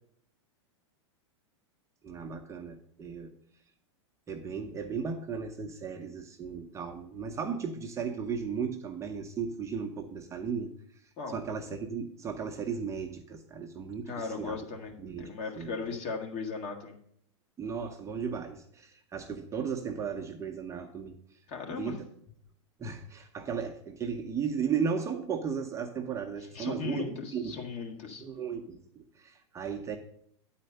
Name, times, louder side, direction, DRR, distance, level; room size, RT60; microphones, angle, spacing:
voice 1, 2.0-3.3 4.3-10.7 11.3-14.6 15.0-15.3 15.6-15.8 17.6-21.2 21.7-22.1 22.8-27.6 28.2-30.0, right 6 dB, 20° right, 4 dB, 0.8 m, -35 dB
voice 2, 14.0-17.0 21.5-22.0 26.5-28.2, left 5 dB, 45° left, 2 dB, 1.6 m, -37 dB
9.0 x 4.3 x 6.6 m, 0.66 s
hypercardioid pair, 115°, 16 cm